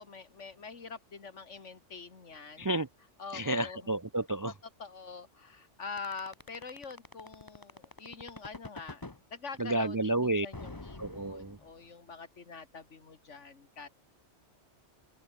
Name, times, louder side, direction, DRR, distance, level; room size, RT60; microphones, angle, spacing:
voice 1, 0.0-2.7 3.2-3.9 4.5-4.6 4.8-9.0 9.3-13.9, left 4 dB, 80° left, 2.4 m, -45 dB
voice 2, 2.6-2.9 3.3-4.5 9.6-10.5 11.0-11.6, right 1 dB, 30° right, 0.3 m, -30 dB
sound 1, 6.0-9.2 10.5-11.9, left 2 dB, 20° left, 1.2 m, -45 dB
open air
omnidirectional pair, 1.2 m